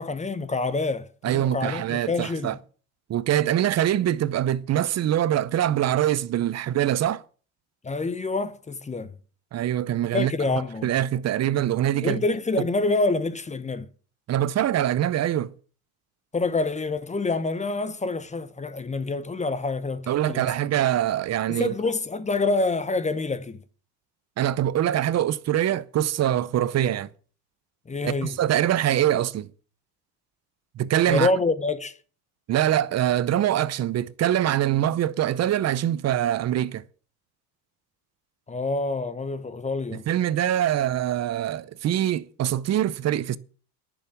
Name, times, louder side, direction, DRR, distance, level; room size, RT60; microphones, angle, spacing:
voice 1, 0.0-2.6 7.8-9.1 10.1-10.9 12.0-13.9 16.3-20.5 21.5-23.6 27.9-28.4 31.1-31.9 38.5-40.0, left 3 dB, 15° left, 0.9 m, -27 dB
voice 2, 1.2-2.6 3.1-7.2 9.5-12.2 14.3-15.5 20.1-21.7 24.4-27.1 28.0-29.5 30.8-31.3 32.5-36.8 39.9-43.4, right 11 dB, 35° right, 0.7 m, -24 dB
10.5 x 7.1 x 8.4 m
supercardioid pair, 120°, 47 cm